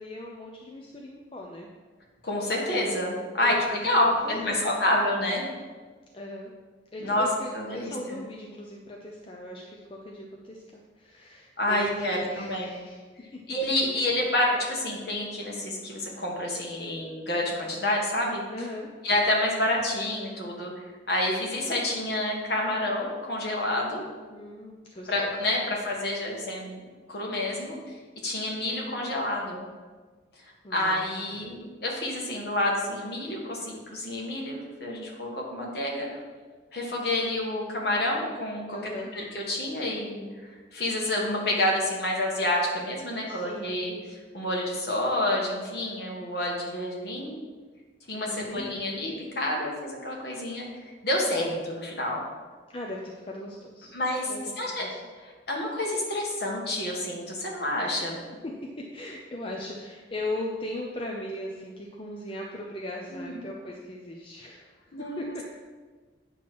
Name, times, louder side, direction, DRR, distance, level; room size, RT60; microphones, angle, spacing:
voice 1, 0.0-1.7 3.4-4.6 6.1-6.5 6.9-13.0 13.3-13.4 18.5-18.9 24.3-25.3 25.6-25.7 30.6-31.3 38.7-39.1 43.3-43.7 48.1-48.9 52.7-53.9 54.3-54.9 57.8-58.1 58.4-65.6, left 1 dB, 30° left, -1 dB, 0.5 m, -39 dB
voice 2, 2.2-5.4 7.0-7.3 7.5-8.2 11.6-12.8 13.5-18.4 19.0-20.7 21.1-24.0 25.1-26.8 27.1-27.7 28.2-29.6 30.7-36.1 36.7-38.8 39.1-40.2 40.7-43.9 44.3-47.4 48.1-52.2 53.9-54.9 55.5-58.2 63.1-63.4 64.9-65.2, left 1 dB, 55° left, -2 dB, 1.5 m, -28 dB
8.9 x 3.0 x 6.0 m, 1.5 s
head